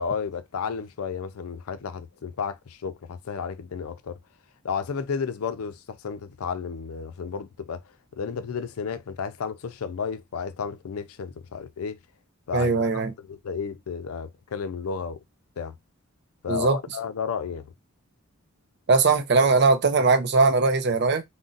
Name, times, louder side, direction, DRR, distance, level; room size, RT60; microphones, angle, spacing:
voice 1, 0.0-4.2 4.6-7.8 8.2-12.0 12.5-15.2 15.6-15.8 16.4-17.7, left 6 dB, 85° left, 0.4 m, -32 dB
voice 2, 12.5-13.1 16.5-16.8 18.9-21.2, right 4 dB, 50° right, 0.5 m, -20 dB
2.5 x 2.1 x 3.8 m
head